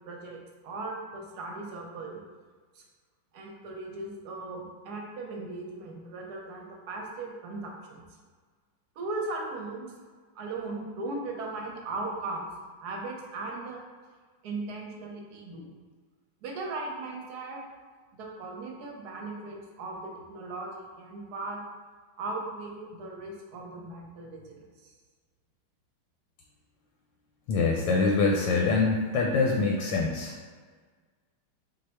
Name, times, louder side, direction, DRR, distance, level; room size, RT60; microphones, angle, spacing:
voice 1, 0.0-2.2 2.7-2.8 3.3-8.0 9.0-9.9 10.3-12.5 12.8-13.8 14.4-15.8 16.4-17.6 18.1-21.6 22.2-24.9, right 2 dB, 65° right, -1 dB, 1.0 m, -38 dB
voice 2, 27.5-30.3, left 4 dB, 75° left, 0 dB, 1.1 m, -24 dB
4.1 x 2.6 x 4.3 m, 1.5 s
omnidirectional pair, 2.3 m